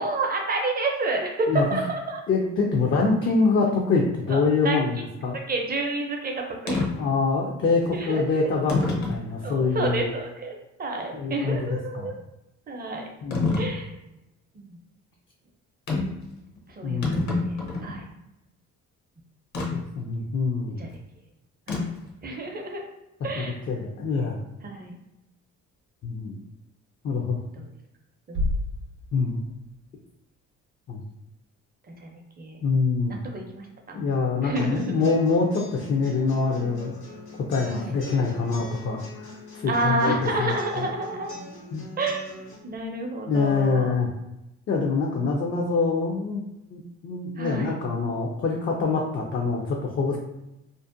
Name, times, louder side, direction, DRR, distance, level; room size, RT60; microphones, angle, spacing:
voice 1, 0.0-2.2 4.3-4.8 5.5-6.8 7.9-8.2 9.4-12.2 12.7-13.1 13.6-13.9 14.5-14.8 16.7-18.1 20.8-20.9 21.7-21.9 22.2-22.8 23.2-23.6 24.6-24.9 27.6-27.7 28.3-28.5 32.0-32.6 33.1-34.0 34.4-34.9 37.6-37.9 39.7-41.3 42.0-42.2 42.6-43.9 47.4-47.7, right 2 dB, 30° right, 2 dB, 0.5 m, -29 dB
voice 2, 2.3-5.4 7.0-9.9 11.1-11.6 11.9-12.1 13.2-13.7 16.8-17.4 19.7-20.8 23.4-24.4 26.0-26.4 27.0-27.4 29.1-29.4 30.9-31.0 32.6-33.1 33.9-36.9 37.5-40.1 40.4-40.5 41.7-41.8 43.3-44.1 44.7-46.4 46.7-50.2, left 4 dB, 40° left, 0 dB, 0.4 m, -25 dB
sound 1, 6.7-6.9 7.8-7.9 8.7-9.2 9.8-9.9 13.3-13.7 15.9-16.2 16.6-16.7 16.9-18.0 19.5-19.7 21.7-22.1, left 3 dB, 65° left, 0.8 m, -27 dB
Bass drum, 28.3-30.0, left 1 dB, 80° right, 0.5 m, -30 dB
sound 2, 34.6-42.5, left 2 dB, 85° left, 1.0 m, -43 dB
2.5 x 2.1 x 2.5 m, 0.92 s
cardioid pair, 90°, 30 cm